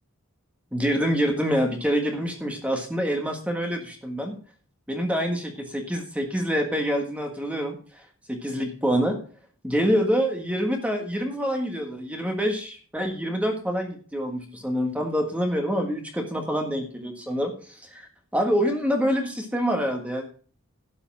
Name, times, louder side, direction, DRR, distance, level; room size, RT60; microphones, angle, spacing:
voice 1, 0.7-4.4 4.9-8.0 8.3-9.2 9.6-20.2, equal, 5° right, 3 dB, 1.6 m, -26 dB
12.0 x 6.8 x 4.7 m, 0.41 s
head